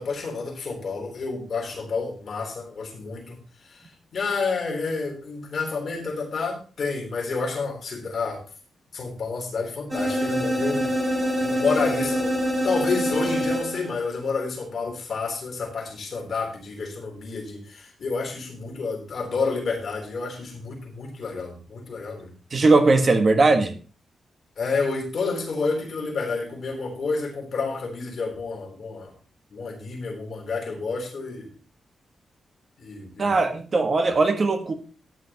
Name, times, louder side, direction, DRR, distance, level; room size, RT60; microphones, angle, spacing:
voice 1, 0.0-8.4 8.9-10.8 11.4-12.4 12.6-22.3 24.6-29.1 29.5-31.5 32.8-33.4, left 4 dB, 50° left, 1 dB, 3.5 m, -29 dB
sound 1, 9.9-14.1, equal, 15° right, 3.7 m, -25 dB
voice 2, 22.5-23.8 33.2-34.7, right 3 dB, 35° right, 6 dB, 1.4 m, -19 dB
14.0 x 10.0 x 3.0 m, 0.37 s
wide cardioid pair, 165°, 0 cm